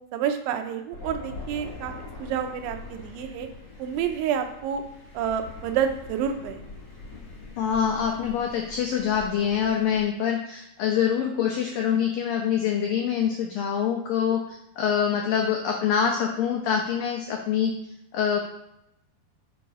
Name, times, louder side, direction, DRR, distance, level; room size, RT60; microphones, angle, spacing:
voice 1, 0.1-1.9 2.2-3.5 3.8-4.8 5.1-6.6, right 8 dB, 85° right, 6 dB, 3.1 m, -28 dB
Thunder, 0.9-10.0, left 3 dB, 35° left, 1.2 m, -43 dB
voice 2, 7.6-18.4, left 8 dB, 85° left, 1 dB, 2.0 m, -25 dB
7.5 x 5.4 x 6.0 m, 0.82 s
omnidirectional pair, 5.3 m